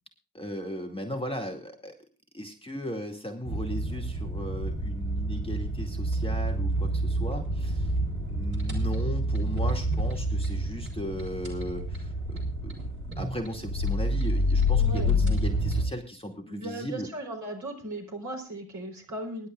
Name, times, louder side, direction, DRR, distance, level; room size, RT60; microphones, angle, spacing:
voice 1, 0.3-1.9 2.3-7.9 8.3-12.8 13.2-17.1, equal, 15° left, 3 dB, 2.5 m, -37 dB
sound 1, 3.4-15.9, equal, 70° right, 3.6 m, -28 dB
voice 2, 14.7-15.4 16.5-19.5, right 1 dB, 40° right, 3 dB, 4.4 m, -37 dB
24.0 x 11.5 x 2.5 m, 0.37 s
figure-of-eight pair, 45°, 43 cm